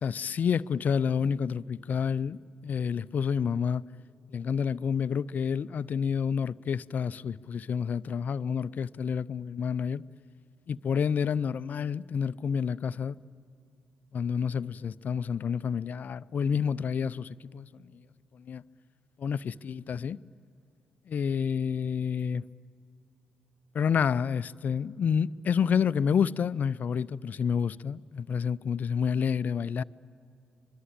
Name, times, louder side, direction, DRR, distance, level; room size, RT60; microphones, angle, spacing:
voice 1, 0.0-3.8 4.3-10.0 10.7-13.2 14.1-17.9 18.3-18.6 19.2-20.2 21.1-22.4 23.7-29.8, left 7 dB, 55° left, 0.5 m, -29 dB
25.5 x 22.0 x 8.9 m
hypercardioid pair, 40°, 4 cm